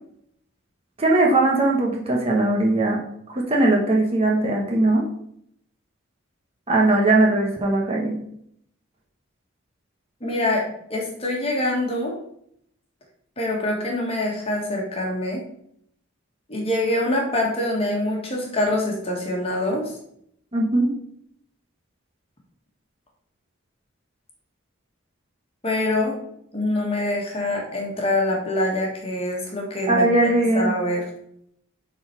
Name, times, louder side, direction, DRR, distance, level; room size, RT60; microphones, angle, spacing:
voice 1, 1.0-3.0 3.3-5.0 6.7-8.2 20.5-20.9 29.9-30.7, right 2 dB, 30° right, -2 dB, 1.1 m, -19 dB
voice 2, 10.2-10.6 10.9-12.1 13.4-15.4 16.5-19.9 25.6-26.2 26.5-30.1 30.5-31.0, left 1 dB, 25° left, -1 dB, 1.6 m, -25 dB
7.2 x 4.1 x 4.5 m, 0.70 s
head